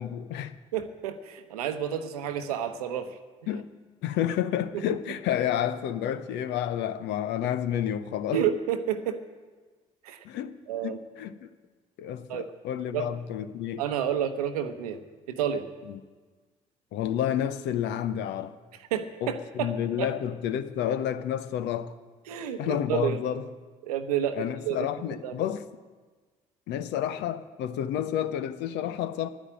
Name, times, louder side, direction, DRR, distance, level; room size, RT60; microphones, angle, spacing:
voice 1, 0.0-0.6 3.5-3.7 4.0-8.5 10.2-11.5 12.0-13.9 15.8-16.0 16.9-18.6 19.2-22.0 22.6-23.5 24.3-25.7 26.7-29.3, left 10 dB, 65° left, 0.7 m, -30 dB
voice 2, 0.7-3.1 4.7-4.8 8.3-9.2 10.0-10.2 10.7-11.0 12.3-12.5 12.9-13.1 13.8-15.0 15.3-15.7 18.9-19.7 20.0-20.1 22.3-23.2 23.8-24.8 25.2-25.4, right 9 dB, 85° right, 0.9 m, -30 dB
10.5 x 9.8 x 8.9 m
hypercardioid pair, 45°, 19 cm